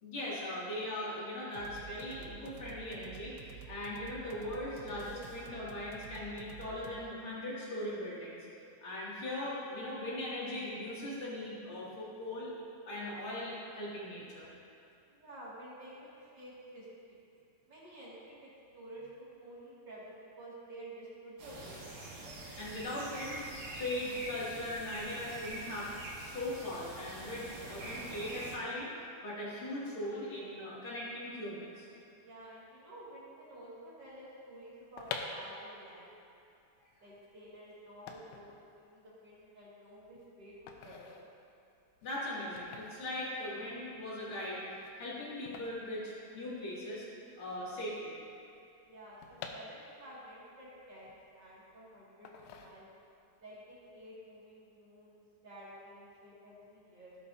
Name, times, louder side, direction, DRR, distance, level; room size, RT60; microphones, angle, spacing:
voice 1, 0.0-8.5 8.8-12.5 12.9-14.5 22.3-23.4 23.8-25.9 26.2-28.9 29.2-31.9 42.0-47.1 47.4-48.2, left 1 dB, 40° left, -9 dB, 2.3 m, -39 dB
sound 1, 1.5-7.0, right 8 dB, 85° right, 3.0 m, -50 dB
voice 2, 15.1-17.2 17.7-21.9 32.2-36.2 37.0-41.2 47.7-47.8 48.8-52.9 53.4-57.2, right 1 dB, 40° right, -9 dB, 1.6 m, -51 dB
sound 2, 21.4-28.6, right 2 dB, 70° right, 4.8 m, -45 dB
sound 3, 34.7-46.8 47.1-47.2 47.4-50.2 50.7-51.7 52.2-53.2 53.6-53.9, left 6 dB, 90° left, 3.0 m, -48 dB
16.5 x 8.1 x 2.7 m, 2.5 s
omnidirectional pair, 5.4 m